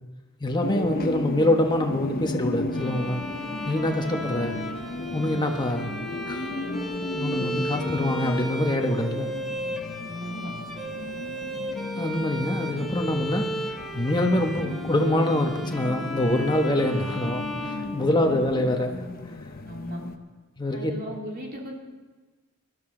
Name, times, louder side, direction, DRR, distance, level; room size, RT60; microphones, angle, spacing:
voice 1, 0.4-3.2 3.6-4.5 5.1-5.9 6.3-6.5 7.1-9.3 12.0-13.4 13.9-19.0 20.6-20.9, left 1 dB, 20° left, 3 dB, 1.2 m, -25 dB
sound 1, 0.6-20.2, left 2 dB, 45° left, 0.8 m, -35 dB
Bowed string instrument, 2.7-18.6, equal, ahead, 1.4 m, -35 dB
voice 2, 10.1-10.5 18.0-18.5 19.7-20.0 20.7-21.8, left 1 dB, 45° right, -1 dB, 2.5 m, -37 dB
20.0 x 12.0 x 3.9 m, 1.3 s
head